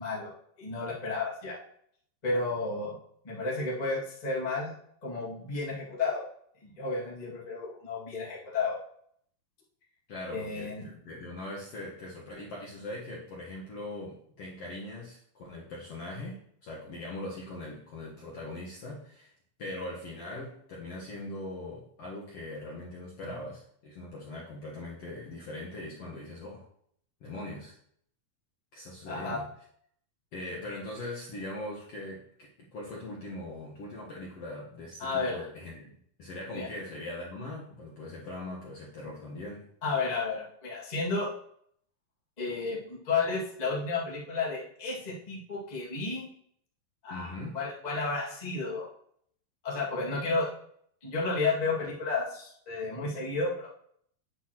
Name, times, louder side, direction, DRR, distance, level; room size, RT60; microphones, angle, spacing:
voice 1, 0.0-1.6 2.2-2.9 3.2-4.7 5.0-6.3 6.6-8.8 10.3-10.8 29.0-29.4 35.0-35.4 36.5-36.7 39.8-41.3 42.4-46.3 47.0-48.9 49.6-50.5 51.0-53.7, left 3 dB, 20° left, -6 dB, 1.2 m, -32 dB
voice 2, 10.1-19.3 19.6-26.7 27.2-27.7 28.7-29.4 30.3-39.7 47.1-47.6, left 1 dB, 55° left, -5 dB, 1.8 m, -41 dB
8.3 x 8.0 x 3.0 m, 0.65 s
omnidirectional pair, 4.2 m